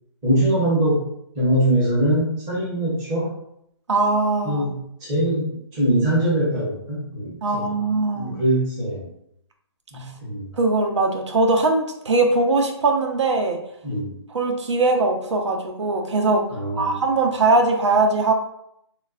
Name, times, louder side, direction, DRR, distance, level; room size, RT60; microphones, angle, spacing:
voice 1, 0.2-1.0 1.3-3.3 4.4-7.7 8.1-9.1 9.9-10.5 13.8-14.1 16.5-17.0, right 1 dB, 10° right, -8 dB, 0.6 m, -22 dB
voice 2, 3.9-4.6 7.4-8.4 9.9-10.1 10.6-13.6 14.3-16.4 16.7-18.3, right 3 dB, 85° right, 3 dB, 0.6 m, -21 dB
3.2 x 2.2 x 2.3 m, 0.74 s
hypercardioid pair, 175°, 15 cm